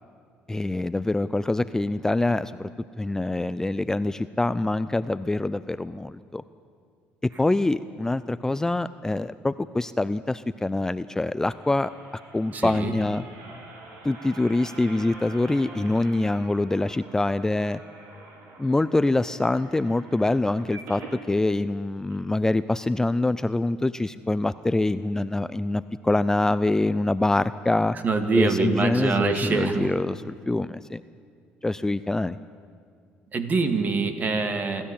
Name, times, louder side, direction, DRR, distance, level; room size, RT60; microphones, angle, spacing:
voice 1, 0.5-2.7 3.0-6.4 7.2-11.9 12.3-13.2 14.0-17.8 18.6-28.0 28.4-31.0 31.6-32.4, left 2 dB, 10° left, 14 dB, 0.5 m, -25 dB
sound 1, 11.1-21.2 21.7-21.8 22.1-22.2, right 3 dB, 70° right, 4.4 m, -46 dB
voice 2, 12.5-13.0 28.0-29.9 33.3-34.9, right 4 dB, 40° right, 7 dB, 2.3 m, -24 dB
25.5 x 13.0 x 8.6 m, 2.3 s
supercardioid pair, 85°, 4 cm